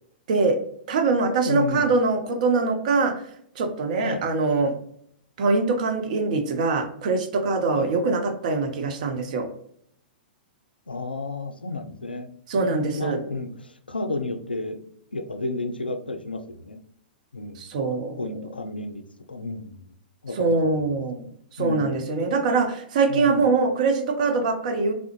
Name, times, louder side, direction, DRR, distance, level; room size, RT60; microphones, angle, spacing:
voice 1, 0.9-3.1 3.6-4.7 5.4-9.5 12.5-13.2 17.6-18.2 20.4-21.3 21.6-24.9, right 3 dB, 50° right, 4 dB, 0.6 m, -23 dB
voice 2, 1.4-1.9 4.0-4.3 7.7-7.9 10.9-13.5 13.9-14.8 15.1-16.8 17.3-17.7 18.2-19.9 20.2-20.9 21.6-21.9 23.1-23.5, left 2 dB, 85° left, 8 dB, 0.3 m, -32 dB
3.5 x 2.1 x 2.9 m, 0.67 s
figure-of-eight pair, 110°, 5 cm